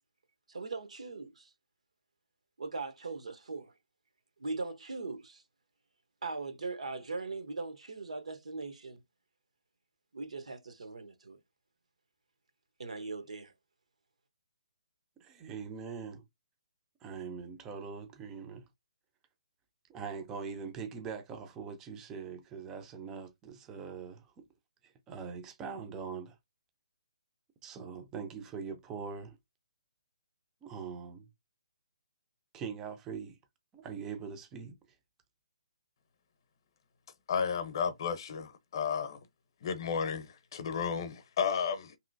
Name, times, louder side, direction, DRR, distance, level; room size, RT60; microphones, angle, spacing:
voice 1, 0.5-1.5 2.6-3.7 4.4-5.4 6.2-9.0 10.1-11.4 12.8-13.5, right 3 dB, 85° right, 0.8 m, -40 dB
voice 2, 15.2-16.2 17.0-18.7 19.9-24.5 24.8-26.4 27.6-29.4 30.6-31.3 32.5-33.4 33.7-34.8, right 6 dB, 10° right, 0.3 m, -42 dB
voice 3, 37.3-39.2 39.6-42.0, left 6 dB, 40° left, 0.6 m, -33 dB
3.0 x 2.9 x 2.5 m
hypercardioid pair, 165°, 3 cm